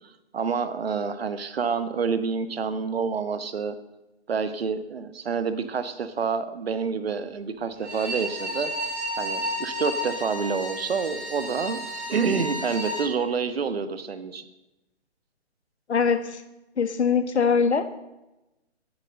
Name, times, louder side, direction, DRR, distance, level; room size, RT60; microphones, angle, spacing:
voice 1, 0.3-3.8 4.3-8.7 9.2-11.8 12.1-14.4, right 5 dB, 60° right, 11 dB, 1.4 m, -28 dB
Bowed string instrument, 7.7-13.1, left 1 dB, 5° right, 6.2 m, -32 dB
voice 2, 15.9-16.4 16.8-17.8, left 6 dB, 75° left, 10 dB, 1.6 m, -22 dB
13.0 x 11.0 x 6.5 m, 0.97 s
hypercardioid pair, 160°, 34 cm